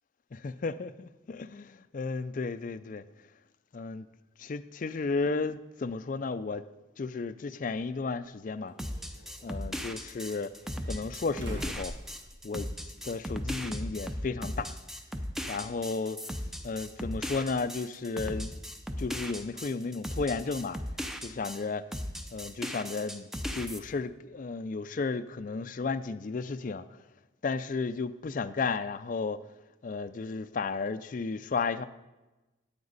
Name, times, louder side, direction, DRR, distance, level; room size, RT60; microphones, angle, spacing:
voice 1, 0.3-3.0 3.7-4.1 4.4-6.6 7.0-8.7 9.4-10.5 10.8-12.0 12.4-12.7 13.0-14.8 15.5-16.2 16.6-18.5 19.0-20.8 21.2-21.9 22.3-27.0 27.4-29.4 29.8-31.8, left 4 dB, 45° left, 0.4 m, -33 dB
sound 1, 7.7-7.8 8.7-9.6 10.5-12.8 13.1-13.2 14.8-14.9, equal, 75° right, 2.5 m, -44 dB
sound 2, 8.8-21.6 21.9-23.8, equal, ahead, 0.6 m, -37 dB
14.5 x 8.8 x 4.0 m
head